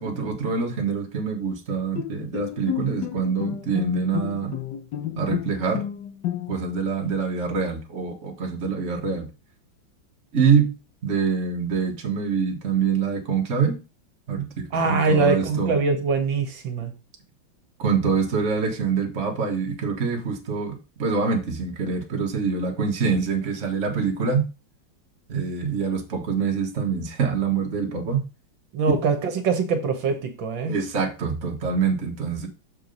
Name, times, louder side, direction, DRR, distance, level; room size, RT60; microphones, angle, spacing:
voice 1, 0.0-4.6 5.2-5.8 6.5-9.3 10.3-10.7 11.0-13.8 14.3-15.7 17.8-24.5 25.3-28.3 30.7-32.5, right 5 dB, 40° right, 2 dB, 1.5 m, -25 dB
Bowed string instrument, 2.0-6.8, left 11 dB, 70° left, 1.3 m, -31 dB
voice 2, 14.7-16.9 28.7-30.8, right 4 dB, 70° right, 6 dB, 1.7 m, -23 dB
6.7 x 4.6 x 5.2 m, 0.30 s
omnidirectional pair, 2.2 m